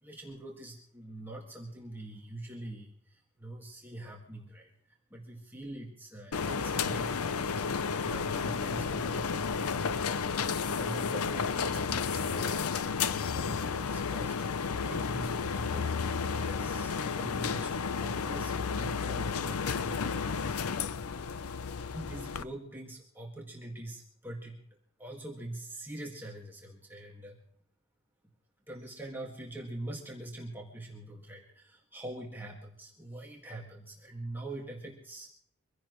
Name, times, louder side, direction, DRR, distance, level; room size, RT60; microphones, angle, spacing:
voice 1, 0.0-4.7 5.1-7.2 7.6-7.8 8.0-9.4 10.5-14.3 14.8-20.8 21.9-24.6 25.0-27.4 28.7-35.3, right 1 dB, 10° right, -1 dB, 1.9 m, -44 dB
sound 1, 6.3-22.4, left 5 dB, 90° left, 0.6 m, -32 dB
24.5 x 16.0 x 3.1 m, 0.68 s
head